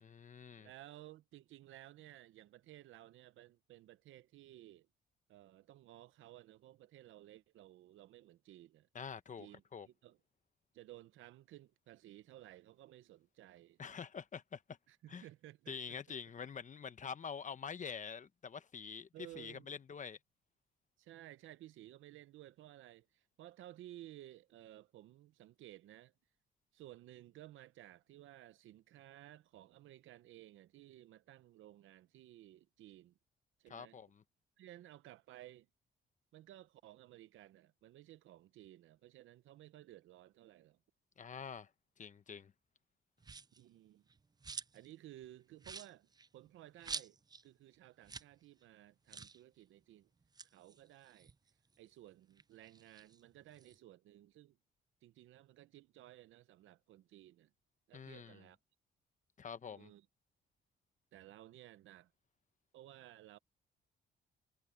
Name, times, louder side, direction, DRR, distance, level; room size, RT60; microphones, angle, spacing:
voice 1, 0.0-0.7 8.9-9.9 13.8-14.8 15.1-15.2 15.7-19.1 19.4-20.2 33.7-34.2 41.2-41.7 42.0-42.5 57.9-58.4 59.4-59.9, left 6 dB, 40° left, 1.1 m, -46 dB
voice 2, 0.6-4.9 5.3-8.9 9.4-10.2 10.7-13.8 14.9-16.2 19.1-19.7 21.0-26.1 26.7-33.2 33.6-34.0 34.6-35.7 36.3-40.8 43.6-44.1 44.7-47.2 47.4-50.1 50.5-51.3 51.8-54.6 55.0-57.5 57.9-58.6 59.7-60.1 61.1-62.1 62.7-63.4, right 14 dB, 80° right, 0.9 m, -57 dB
sound 1, 43.2-43.6 44.1-44.9 45.2-45.3 45.6-47.5 47.7-47.8 48.0-48.4 48.6-48.7 49.1-49.4 50.2-51.9 52.3-53.8, right 4 dB, 20° right, 0.5 m, -48 dB
cardioid pair, 90°, 20 cm